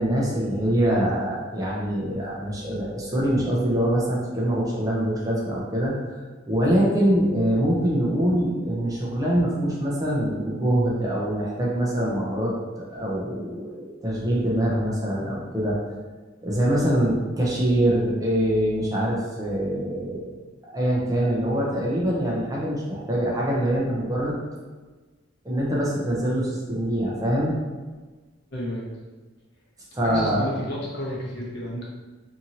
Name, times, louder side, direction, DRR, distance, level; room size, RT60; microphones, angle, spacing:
voice 1, 0.0-6.1 6.4-15.8 16.4-20.3 20.7-24.4 25.4-27.6 29.9-30.4, right 1 dB, 20° right, -5 dB, 0.5 m, -24 dB
voice 2, 28.5-28.9 30.0-31.8, equal, 60° left, -4 dB, 0.8 m, -31 dB
2.8 x 2.5 x 2.7 m, 1.3 s
head